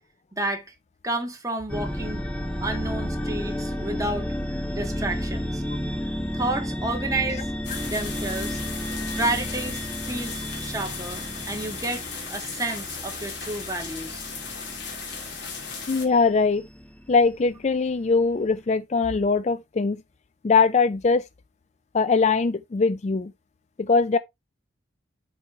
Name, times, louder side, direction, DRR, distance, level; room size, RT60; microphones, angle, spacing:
voice 1, 0.3-0.7 1.0-2.2 2.6-4.3 4.7-5.6 6.3-7.5 7.8-8.6 9.2-14.2, right 2 dB, 15° right, 1.8 m, -30 dB
sound 1, 1.7-17.7, equal, 5° left, 1.1 m, -32 dB
sound 2, 7.6-16.1, left 5 dB, 70° left, 2.7 m, -36 dB
voice 2, 15.9-16.6 17.1-20.0 20.4-21.2 21.9-23.3 23.8-24.2, left 4 dB, 35° left, 0.4 m, -21 dB
7.5 x 4.6 x 4.5 m
head